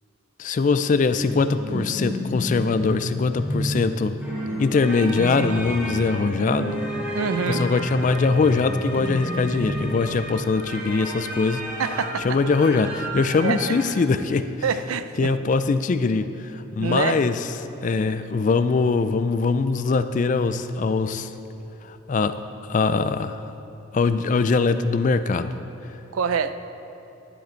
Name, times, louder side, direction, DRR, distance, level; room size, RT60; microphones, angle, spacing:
voice 1, 0.4-4.1 4.6-6.8 7.5-11.6 12.2-14.5 15.2-17.4 17.8-21.3 21.9-22.3 22.6-23.4 23.9-25.5, left 4 dB, 40° left, 11 dB, 0.3 m, -22 dB
sound 1, 1.1-10.0, left 1 dB, 70° right, 2.2 m, -30 dB
sound 2, 4.2-13.9, equal, 5° right, 1.3 m, -34 dB
voice 2, 7.1-7.7 11.8-12.4 13.4-13.7 14.6-15.3 16.8-17.1 26.1-26.6, right 6 dB, 85° right, 12 dB, 0.4 m, -25 dB
11.0 x 7.5 x 4.5 m, 3.0 s
head